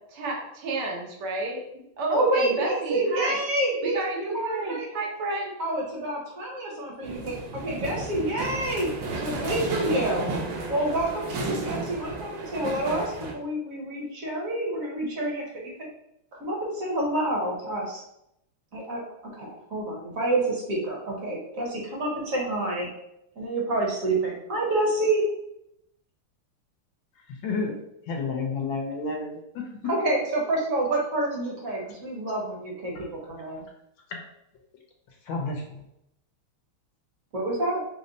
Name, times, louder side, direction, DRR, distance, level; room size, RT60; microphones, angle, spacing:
voice 1, 0.1-3.4 3.8-5.5, right 2 dB, 90° right, -1 dB, 1.9 m, -31 dB
voice 2, 2.1-4.9 5.6-8.9 9.2-10.3 10.7-15.9 16.3-18.0 18.7-19.0 19.3-22.9 23.4-25.2 29.8-32.9 33.3-33.6 37.3-37.8, right 1 dB, 50° right, -2 dB, 1.1 m, -28 dB
sound 1, 7.0-13.3, right 3 dB, 70° right, 1.3 m, -33 dB
voice 3, 27.4-27.7 28.1-29.6 34.1-34.2 35.3-35.8, left 4 dB, 70° left, 1 dB, 1.3 m, -30 dB
5.2 x 2.1 x 3.9 m, 0.80 s
omnidirectional pair, 2.4 m